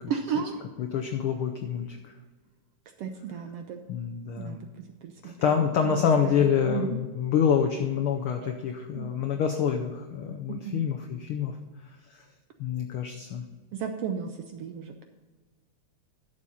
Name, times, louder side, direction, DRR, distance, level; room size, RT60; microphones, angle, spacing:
voice 1, 0.0-0.6 3.0-3.8 4.4-5.3 5.8-7.0 8.4-8.5 8.9-9.2 10.5-10.9 13.7-15.0, right 7 dB, 75° right, 5 dB, 1.4 m, -34 dB
voice 2, 0.8-2.1 3.9-4.6 5.2-11.5 12.6-13.4, left 7 dB, 80° left, 4 dB, 1.2 m, -27 dB
11.5 x 7.3 x 4.2 m, 1.4 s
omnidirectional pair, 3.4 m